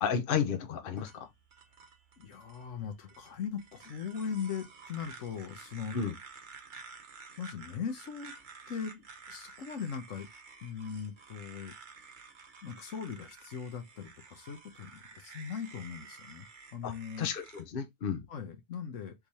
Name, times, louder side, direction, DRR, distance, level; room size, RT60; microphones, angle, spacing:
voice 1, 0.0-1.3 5.9-6.1 16.8-16.9 17.2-18.3, left 7 dB, 50° left, 0.9 m, -32 dB
sound 1, 0.9-17.6, right 5 dB, 45° right, 0.9 m, -52 dB
voice 2, 2.2-6.0 7.4-8.3 8.7-10.3 10.6-11.7 12.6-16.5 16.7-17.3 18.3-19.1, left 7 dB, 70° left, 1.2 m, -39 dB
3.5 x 3.3 x 4.1 m
omnidirectional pair, 1.4 m